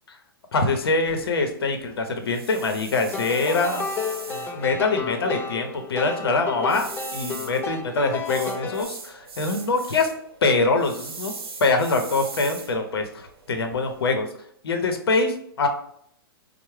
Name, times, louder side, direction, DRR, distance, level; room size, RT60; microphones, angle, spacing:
voice 1, 0.5-3.8 4.3-10.1 10.4-11.3 11.6-14.3 14.6-15.7, left 3 dB, 85° left, 5 dB, 0.6 m, -24 dB
sound 1, 1.1-14.1, right 4 dB, 85° right, 0.8 m, -41 dB
sound 2, 3.1-8.8, left 4 dB, 15° left, 0.4 m, -32 dB
4.4 x 2.0 x 3.1 m, 0.68 s
hypercardioid pair, 130°, 12 cm